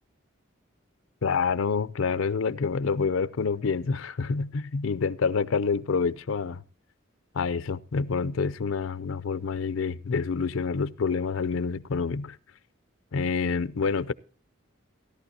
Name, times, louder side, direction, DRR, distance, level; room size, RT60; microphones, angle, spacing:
voice 1, 1.2-6.6 7.3-12.4 13.1-14.1, left 5 dB, 80° left, 0.5 m, -27 dB
16.5 x 11.5 x 2.8 m
head